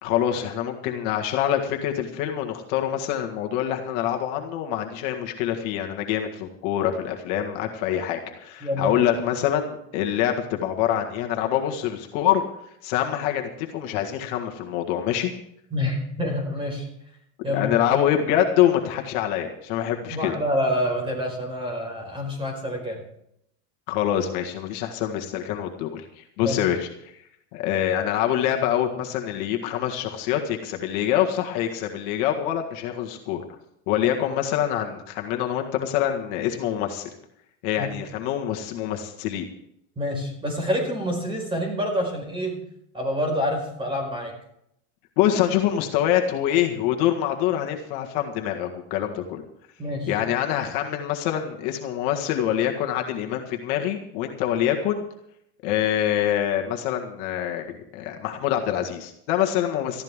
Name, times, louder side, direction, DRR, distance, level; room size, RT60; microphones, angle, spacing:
voice 1, 0.0-12.4 12.8-15.3 17.5-20.4 23.9-27.2 27.5-33.4 33.9-37.1 37.6-39.4 45.2-49.4 50.1-55.0 55.6-57.7 57.9-60.0, left 10 dB, 55° left, 3 dB, 1.8 m, -25 dB
voice 2, 8.6-8.9 15.7-16.9 17.4-17.8 20.1-23.0 26.4-26.6 37.8-37.9 39.9-42.6 42.9-44.3 49.8-50.1, equal, 15° right, 2 dB, 5.0 m, -27 dB
19.5 x 14.5 x 3.7 m, 0.75 s
supercardioid pair, 155°, 38 cm